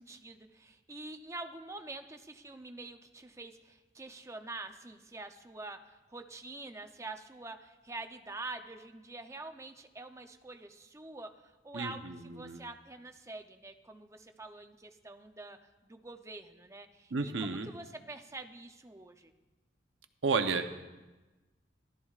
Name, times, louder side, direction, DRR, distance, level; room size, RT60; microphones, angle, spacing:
voice 1, 0.0-11.3 11.6-15.6 15.8-19.3, right 2 dB, 15° right, 6 dB, 0.6 m, -46 dB
voice 2, 11.7-12.1 12.4-12.6 17.1-17.7 20.2-20.7, right 4 dB, 90° right, 7 dB, 0.8 m, -31 dB
14.5 x 12.5 x 2.4 m, 1.1 s
head